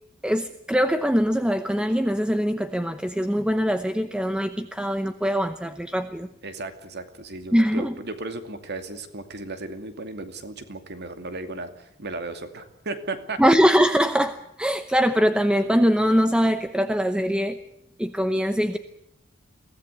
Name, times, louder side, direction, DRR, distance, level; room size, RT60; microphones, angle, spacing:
voice 1, 0.2-6.3 7.5-7.9 13.4-17.6 18.0-18.8, equal, 5° right, 9 dB, 0.8 m, -22 dB
voice 2, 6.4-13.4, right 2 dB, 50° right, 8 dB, 2.5 m, -35 dB
23.0 x 17.0 x 8.4 m, 0.81 s
head